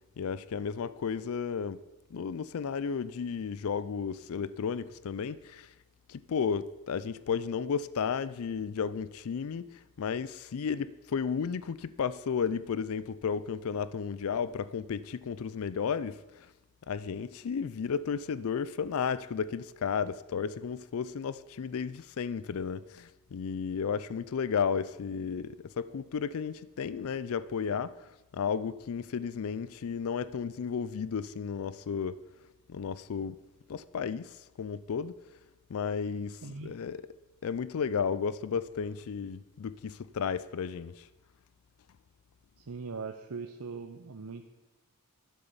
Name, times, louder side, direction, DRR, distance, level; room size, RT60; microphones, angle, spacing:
voice 1, 0.2-1.8 2.1-5.7 6.1-16.5 16.9-32.2 32.7-33.4 33.7-35.2 35.7-37.1 37.4-41.1, left 6 dB, 65° left, 0.4 m, -33 dB
voice 2, 36.4-36.7 42.7-44.5, right 4 dB, 85° right, 0.8 m, -40 dB
12.0 x 8.0 x 7.1 m
head